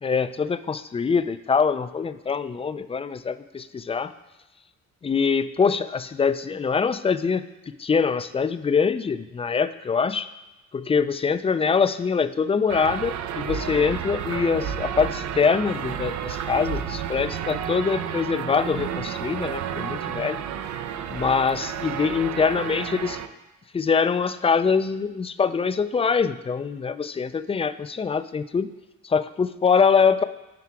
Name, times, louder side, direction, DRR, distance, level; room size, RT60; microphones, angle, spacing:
voice 1, 0.0-4.1 5.0-7.4 7.8-10.3 10.7-20.4 21.1-23.2 23.7-28.7 29.0-30.2, left 5 dB, 20° left, 13 dB, 0.3 m, -24 dB
sound 1, 12.7-23.3, right 9 dB, 70° right, 0.6 m, -31 dB
9.6 x 4.9 x 4.7 m, 1.1 s
cardioid pair, 90°, 30 cm